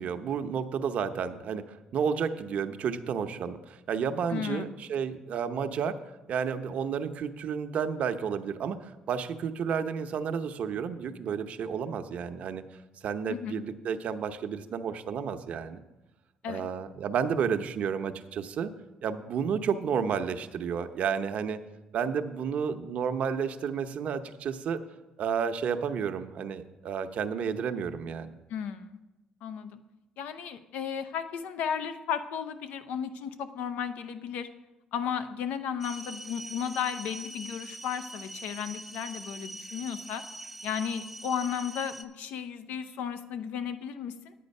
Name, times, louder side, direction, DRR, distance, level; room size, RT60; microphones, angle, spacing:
voice 1, 0.0-6.0 6.3-12.6 13.0-15.8 16.5-18.7 19.0-21.6 21.9-24.8 25.2-28.4, right 7 dB, 60° right, 8 dB, 0.7 m, -31 dB
voice 2, 4.3-4.7 13.3-13.6 16.4-16.6 28.5-29.0 29.4-29.8 30.2-34.5 34.9-40.2 40.6-44.3, left 8 dB, 75° left, 10 dB, 0.7 m, -34 dB
sound 1, 35.8-42.0, right 2 dB, 5° right, 0.7 m, -43 dB
9.3 x 8.5 x 5.4 m, 1.0 s
cardioid pair, 85°, 3 cm